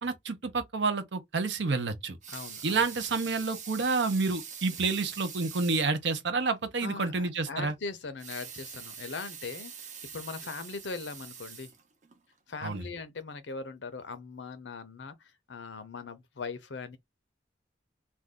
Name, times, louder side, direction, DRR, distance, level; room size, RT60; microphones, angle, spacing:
voice 1, 0.0-2.2 2.6-7.7 12.6-12.9, right 4 dB, 75° right, 0.7 m, -29 dB
Water tap faucet / Sink (filling or washing) / Liquid, 2.0-6.0 6.4-6.5 6.9-7.0 8.1-12.2 12.8-12.9, right 7 dB, 40° right, 0.7 m, -44 dB
voice 2, 2.3-2.9 6.8-11.7 12.5-17.0, left 4 dB, 85° left, 0.7 m, -40 dB
2.6 x 2.3 x 3.5 m
head